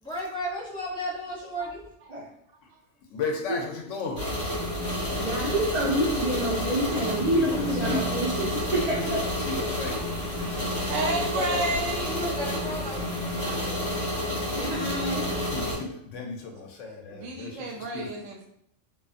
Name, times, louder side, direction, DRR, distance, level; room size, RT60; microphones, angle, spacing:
voice 1, 0.0-1.8 11.1-11.6 12.1-13.9, left 1 dB, 5° left, -7 dB, 0.5 m, -34 dB
voice 2, 3.1-4.2 7.3-8.0 9.0-10.0 14.7-14.9 15.2-18.1, left 4 dB, 80° left, 1 dB, 0.9 m, -34 dB
sound 1, 4.2-15.7, left 1 dB, 40° left, 1.3 m, -30 dB
voice 3, 5.2-9.2 14.6-15.2, right 1 dB, 45° right, -5 dB, 0.6 m, -27 dB
voice 4, 10.9-12.2 17.1-18.5, right 2 dB, 85° right, 2 dB, 0.9 m, -30 dB
2.5 x 2.4 x 2.4 m, 0.71 s
omnidirectional pair, 1.3 m